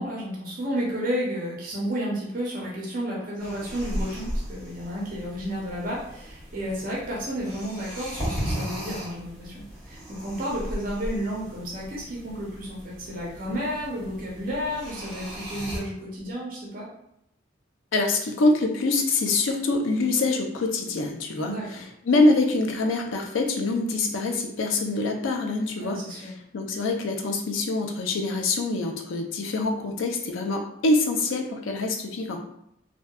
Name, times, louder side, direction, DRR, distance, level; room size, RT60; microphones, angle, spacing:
voice 1, 0.0-16.9 21.4-21.8 25.8-26.3, equal, 45° right, -4 dB, 0.6 m, -32 dB
sound 1, 3.4-15.8, equal, ahead, 1.0 m, -36 dB
voice 2, 17.9-21.6 22.0-32.4, left 2 dB, 85° left, 3 dB, 0.4 m, -25 dB
2.6 x 2.2 x 2.2 m, 0.77 s
head